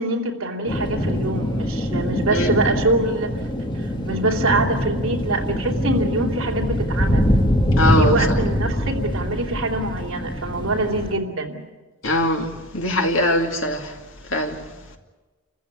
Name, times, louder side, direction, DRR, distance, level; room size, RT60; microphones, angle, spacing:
voice 1, 0.0-3.3 4.1-7.2 8.0-11.6, right 2 dB, 65° right, 3.0 m, -24 dB
sound 1, 0.7-11.1, equal, 20° left, 1.8 m, -23 dB
voice 2, 7.8-8.1 12.0-13.9 14.3-14.6, left 1 dB, 60° left, 2.5 m, -21 dB
28.0 x 15.0 x 9.5 m
head